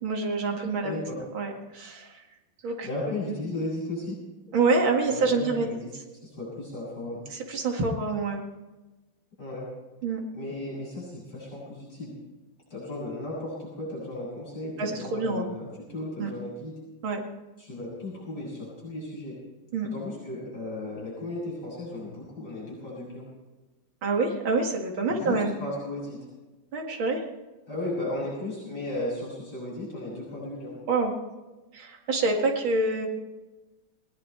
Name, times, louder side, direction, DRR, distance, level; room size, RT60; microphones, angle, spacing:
voice 1, 0.0-1.0 1.3-2.2 2.6-2.9 3.2-3.3 4.5-5.7 7.3-8.4 10.0-10.2 14.8-15.5 16.2-16.3 17.0-17.2 19.7-19.9 24.0-25.5 26.7-27.2 30.9-31.1 31.7-33.1, right 3 dB, 75° right, 1 dB, 2.9 m, -26 dB
voice 2, 0.8-1.2 2.8-4.2 5.1-5.9 6.2-7.3 9.4-9.7 10.3-12.1 12.7-16.7 17.6-19.4 19.9-23.3 25.1-26.2 27.7-30.8, left 1 dB, 50° left, -6 dB, 7.6 m, -35 dB
20.5 x 20.0 x 3.4 m, 1.2 s
omnidirectional pair, 2.2 m